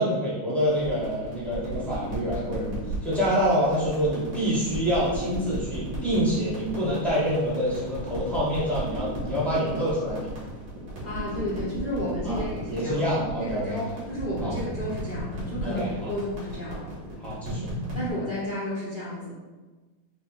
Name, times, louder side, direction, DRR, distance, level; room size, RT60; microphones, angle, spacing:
voice 1, 0.0-10.3 12.2-12.4 12.7-13.8 14.4-14.5 15.6-16.1 17.2-17.7, equal, ahead, -9 dB, 0.4 m, -26 dB
sound 1, 0.7-18.1, right 1 dB, 80° right, 2.3 m, -36 dB
voice 2, 11.0-13.0 13.4-16.9 17.9-19.3, left 1 dB, 70° left, -8 dB, 0.4 m, -32 dB
5.3 x 2.0 x 3.8 m, 1.2 s
omnidirectional pair, 2.3 m